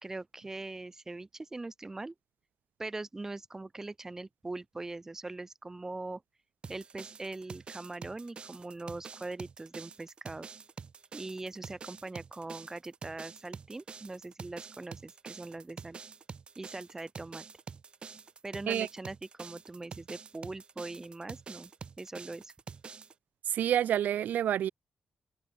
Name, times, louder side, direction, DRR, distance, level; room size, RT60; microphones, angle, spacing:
voice 1, 0.0-2.1 2.8-6.2 6.7-10.5 11.1-16.0 16.6-17.5 18.4-21.7 22.0-22.5, right 2 dB, 15° right, 1.4 m, -41 dB
sound 1, 6.6-23.1, right 5 dB, 35° right, 0.3 m, -47 dB
voice 2, 23.5-24.7, right 10 dB, 85° right, 0.6 m, -28 dB
wide cardioid pair, 155°, 3 cm